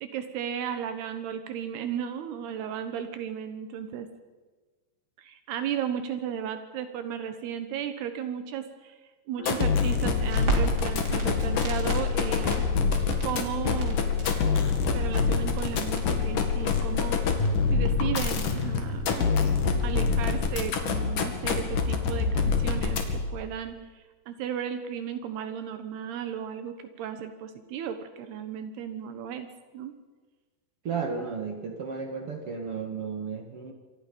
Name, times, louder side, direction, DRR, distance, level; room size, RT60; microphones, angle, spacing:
voice 1, 0.0-4.1 5.2-8.9 9.3-12.6 13.2-14.0 14.9-17.2 17.7-19.3 19.8-23.8 24.3-29.5 29.7-30.0, right 9 dB, 80° right, 9 dB, 3.2 m, -34 dB
sound 1, 9.4-23.4, left 5 dB, 60° left, 3.4 m, -26 dB
Crackle, 10.1-20.7, right 2 dB, 25° right, 3.9 m, -38 dB
voice 2, 30.8-33.7, right 5 dB, 50° right, 4 dB, 1.9 m, -33 dB
27.5 x 24.0 x 5.5 m, 1.3 s
omnidirectional pair, 4.7 m